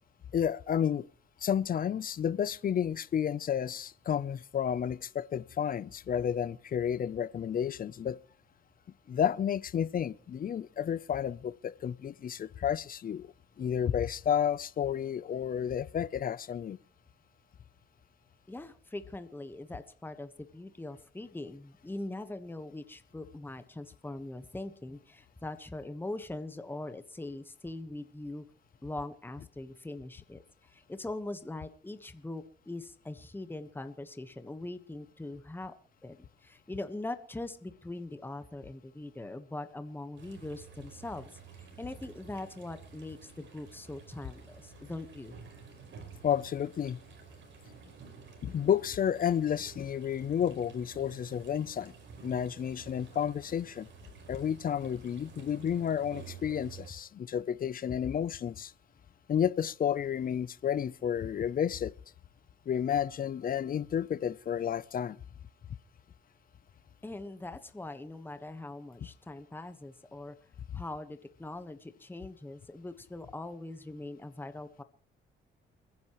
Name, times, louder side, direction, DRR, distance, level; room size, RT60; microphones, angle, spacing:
voice 1, 0.3-1.1 1.4-8.2 9.1-13.3 13.6-16.8 46.2-47.0 48.4-51.9 52.2-53.9 54.3-58.7 59.3-61.9 62.7-65.2, left 8 dB, 45° left, 0.6 m, -31 dB
voice 2, 18.5-28.4 28.8-35.7 36.0-45.4 67.0-70.4 70.7-74.8, left 2 dB, 10° left, 1.3 m, -42 dB
sound 1, 40.2-56.9, right 6 dB, 70° right, 5.0 m, -51 dB
29.0 x 10.5 x 3.1 m
cardioid pair, 90°, 20 cm